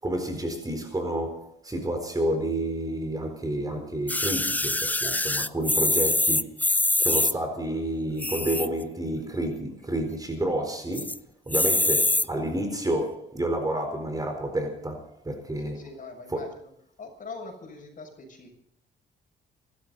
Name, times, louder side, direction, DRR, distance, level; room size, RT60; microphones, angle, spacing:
voice 1, 0.0-6.5 7.0-11.2 11.5-15.8 16.3-16.5, right 1 dB, 20° right, 4.2 m, -30 dB
sound 1, 4.1-7.3 8.1-8.8 9.3-9.4 9.5-9.6 10.0-10.4 10.9-11.2 11.5-12.3 13.0-13.1, left 2 dB, 10° left, 0.7 m, -24 dB
voice 2, 15.6-16.5 17.0-18.5, left 3 dB, 40° left, 6.8 m, -42 dB
26.5 x 13.0 x 4.1 m
cardioid pair, 90°, 20 cm